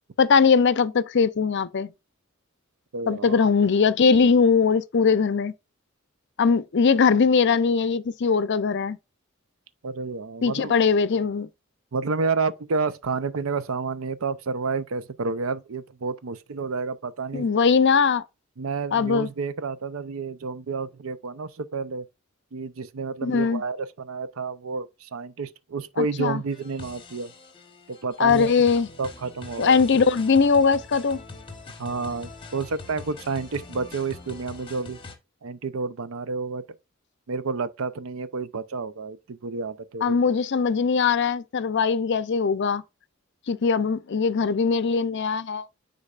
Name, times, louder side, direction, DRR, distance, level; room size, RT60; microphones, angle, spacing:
voice 1, 0.2-1.9 3.1-5.5 6.4-9.0 10.4-11.5 17.3-18.2 18.9-19.3 23.2-23.6 26.0-26.4 28.2-28.9 29.6-31.2 40.0-42.8 43.5-45.7, left 5 dB, 60° left, 0.5 m, -21 dB
voice 2, 2.9-3.5 9.8-10.7 11.9-17.5 18.6-22.1 22.5-27.3 27.9-28.5 29.0-29.8 31.8-35.0 35.4-36.6 37.3-40.1, right 4 dB, 80° right, 0.6 m, -30 dB
sound 1, 26.5-35.2, left 3 dB, 25° left, 1.1 m, -43 dB
9.8 x 4.0 x 2.4 m
head